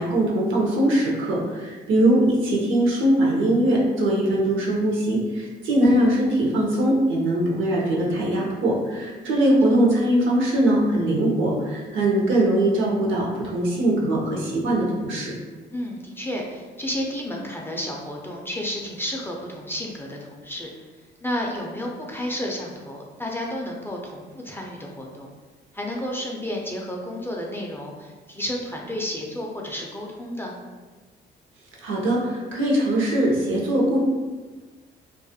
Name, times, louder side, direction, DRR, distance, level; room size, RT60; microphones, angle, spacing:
voice 1, 0.0-15.3 31.8-34.0, right 1 dB, 75° right, -3 dB, 0.7 m, -21 dB
voice 2, 15.7-20.7 21.2-25.3 25.7-30.6, left 1 dB, 10° left, -1 dB, 0.3 m, -31 dB
2.3 x 2.1 x 2.7 m, 1.3 s
cardioid pair, 90°, 20 cm